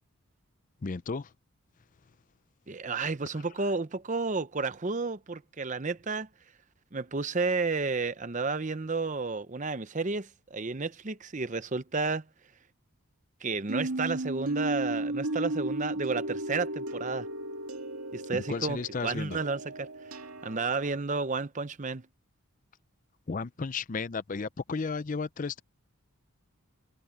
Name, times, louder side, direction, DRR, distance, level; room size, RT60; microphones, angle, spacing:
voice 1, 0.8-1.3 18.3-19.4 23.3-25.6, left 4 dB, 35° left, 0.5 m, -33 dB
voice 2, 2.7-6.3 6.9-12.3 13.4-17.3 18.1-22.1, right 4 dB, 35° right, 0.7 m, -32 dB
sound 1, 13.7-21.0, right 1 dB, 80° right, 2.2 m, -35 dB
head